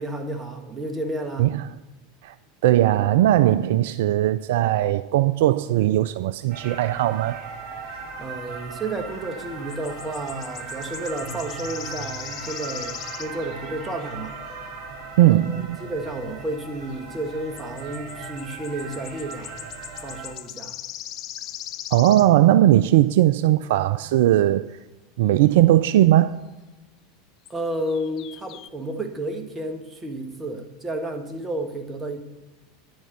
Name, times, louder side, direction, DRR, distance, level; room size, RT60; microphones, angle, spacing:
voice 1, 0.0-1.5 8.2-14.4 15.2-19.6 20.0-20.7 27.5-32.2, right 1 dB, 15° right, 1.6 m, -31 dB
voice 2, 1.4-1.7 2.2-2.4 2.6-7.4 15.2-15.8 21.9-24.8 25.2-26.4, right 14 dB, 65° right, 0.3 m, -19 dB
sound 1, 6.5-20.3, right 4 dB, 35° right, 3.0 m, -38 dB
sound 2, 9.7-14.2 17.6-22.3 25.5-25.6 27.4-27.5 27.9-28.7, left 12 dB, 45° left, 0.5 m, -39 dB
10.0 x 6.3 x 6.9 m
hypercardioid pair, 85°, 0 cm